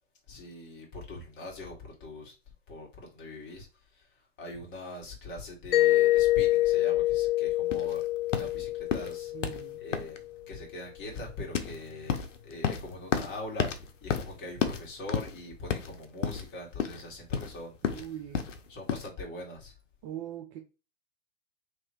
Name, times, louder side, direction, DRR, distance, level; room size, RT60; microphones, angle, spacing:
voice 1, 0.3-2.3 2.7-8.0 8.3-9.3 9.8-10.2 10.5-17.8 18.7-19.7, left 1 dB, 30° left, 2.0 m, -42 dB
Mallet percussion, 5.7-10.3, left 16 dB, 50° left, 0.4 m, -26 dB
sound 1, 7.7-19.1, left 7 dB, 75° left, 0.9 m, -33 dB
voice 2, 9.3-9.8 17.8-18.5 20.0-20.6, right 11 dB, 30° right, 0.4 m, -41 dB
3.1 x 3.0 x 4.6 m
hypercardioid pair, 110°, 37 cm